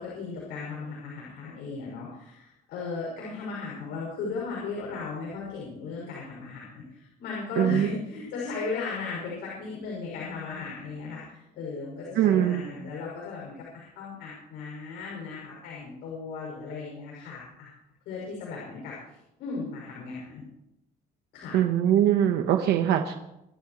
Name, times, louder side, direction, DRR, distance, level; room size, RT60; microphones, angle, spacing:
voice 1, 0.0-17.7 18.0-20.4 21.3-21.6, left 4 dB, 85° left, -4 dB, 6.4 m, -36 dB
voice 2, 7.6-7.9 12.2-12.6 21.5-23.1, right 11 dB, 75° right, 5 dB, 1.2 m, -22 dB
25.5 x 12.5 x 3.2 m, 0.87 s
cardioid pair, 110°, 17 cm